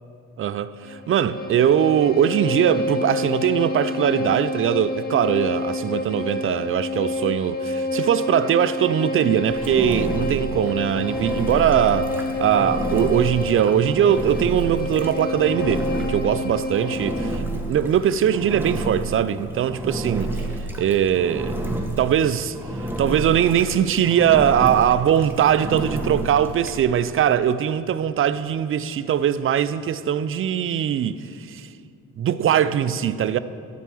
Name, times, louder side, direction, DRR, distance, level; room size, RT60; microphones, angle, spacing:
voice 1, 0.4-17.3 17.7-20.5 20.8-21.6 22.0-22.6 23.0-31.7 32.2-33.4, right 9 dB, 45° right, 0.4 m, -21 dB
Bowed string instrument, 0.8-17.4, left 2 dB, 30° left, 1.1 m, -28 dB
Engine, 9.5-26.8, right 1 dB, 5° right, 1.1 m, -30 dB
12.5 x 4.6 x 7.7 m
cardioid pair, 90°, 30 cm